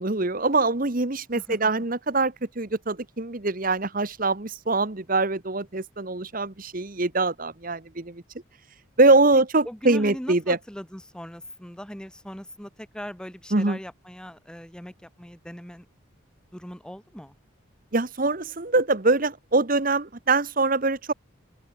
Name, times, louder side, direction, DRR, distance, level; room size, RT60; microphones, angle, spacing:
voice 1, 0.0-8.2 9.0-10.6 13.5-13.8 17.9-21.1, right 3 dB, 40° right, 1.2 m, -23 dB
voice 2, 1.3-1.7 9.6-15.9 16.5-17.3, equal, 5° left, 1.1 m, -40 dB
open air
head